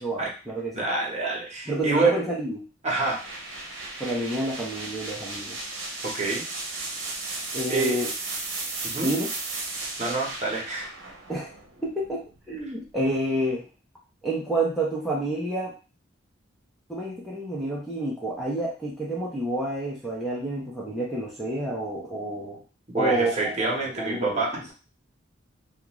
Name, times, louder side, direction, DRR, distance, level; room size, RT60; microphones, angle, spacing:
voice 1, 0.0-0.9 1.7-2.6 4.0-5.6 7.5-8.1 9.0-9.3 11.3-11.5 11.8-13.6 14.2-15.7 16.9-22.6 22.9-24.6, right 1 dB, ahead, -6 dB, 0.6 m, -29 dB
voice 2, 0.7-2.2 2.8-3.2 3.8-4.2 6.0-6.4 7.7-8.0 8.8-9.1 10.0-10.9 22.9-24.7, right 3 dB, 35° right, -2 dB, 0.9 m, -27 dB
sound 1, 3.0-12.7, right 3 dB, 85° right, 0.8 m, -35 dB
2.4 x 2.4 x 3.0 m, 0.33 s
head